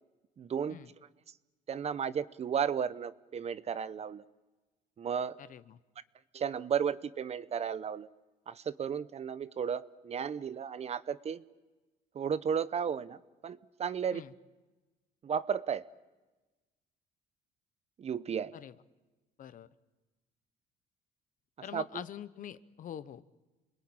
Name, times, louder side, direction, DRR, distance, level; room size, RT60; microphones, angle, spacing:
voice 1, 0.4-0.8 1.7-4.2 5.0-5.4 6.3-8.1 8.5-11.4 12.1-14.2 15.2-15.8 18.0-18.5 21.7-21.8, right 7 dB, 40° right, 15 dB, 0.8 m, -34 dB
voice 2, 5.4-5.8 14.1-14.3 18.5-18.8 19.4-19.7 21.6-23.2, left 10 dB, 50° left, 15 dB, 1.0 m, -44 dB
29.5 x 21.0 x 8.8 m, 1.2 s
cardioid pair, 110°, 17 cm